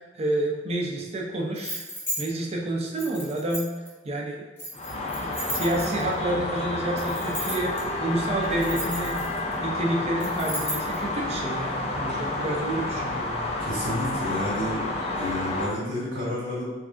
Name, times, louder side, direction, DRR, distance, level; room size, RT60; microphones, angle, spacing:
voice 1, 0.1-1.8 2.2-3.7 4.0-4.4 5.2-9.2 9.6-13.5, right 1 dB, 35° right, -1 dB, 0.4 m, -29 dB
sound 1, 1.5-2.2 3.0-3.9 4.6-6.1 7.0-7.8 8.4-9.5 10.2-11.0, equal, 10° left, 0.8 m, -34 dB
sound 2, 4.7-15.7, left 2 dB, 35° left, 0.3 m, -30 dB
voice 2, 13.6-14.9 15.1-16.6, left 1 dB, 75° right, -7 dB, 1.3 m, -30 dB
3.2 x 2.4 x 2.4 m, 1.3 s
head